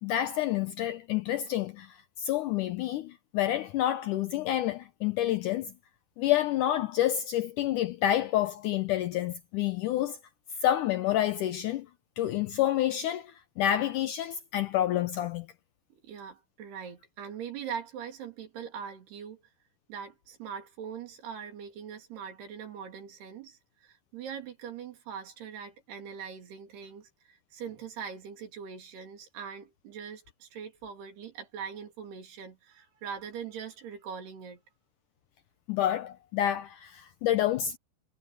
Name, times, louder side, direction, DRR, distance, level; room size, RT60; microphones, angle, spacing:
voice 1, 0.0-5.7 6.2-10.2 10.6-11.9 12.2-15.5 35.7-37.8, left 12 dB, 85° left, 1.8 m, -28 dB
voice 2, 16.0-19.4 19.9-34.6, right 7 dB, 90° right, 5.3 m, -42 dB
omnidirectional pair, 4.5 m